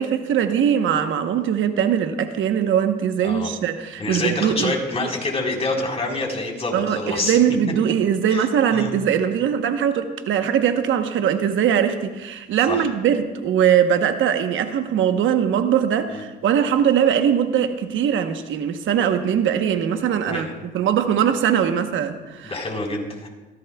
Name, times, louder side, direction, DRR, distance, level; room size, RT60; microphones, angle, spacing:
voice 1, 0.0-4.7 6.7-20.5 20.7-22.5, right 8 dB, 80° right, 7 dB, 1.0 m, -21 dB
voice 2, 4.0-7.4 8.3-8.9 12.7-12.9 16.1-16.2 20.3-20.5 22.4-23.3, left 2 dB, 30° left, 0 dB, 4.1 m, -27 dB
23.5 x 15.5 x 2.3 m, 1.2 s
cardioid pair, 90°, 20 cm